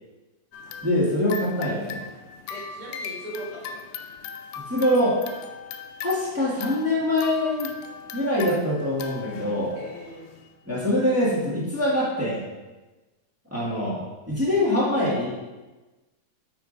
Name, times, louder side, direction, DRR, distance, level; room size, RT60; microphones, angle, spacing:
sound 1, 0.5-10.5, left 5 dB, 80° left, 1.9 m, -39 dB
voice 1, 0.8-2.0 4.7-5.2 6.0-7.7 8.1-9.8 10.6-12.4 13.5-15.3, left 1 dB, 10° right, -7 dB, 0.7 m, -24 dB
voice 2, 2.5-3.8 9.7-10.3, right 1 dB, 60° right, -4 dB, 3.3 m, -39 dB
8.5 x 4.7 x 4.0 m, 1.2 s
omnidirectional pair, 3.5 m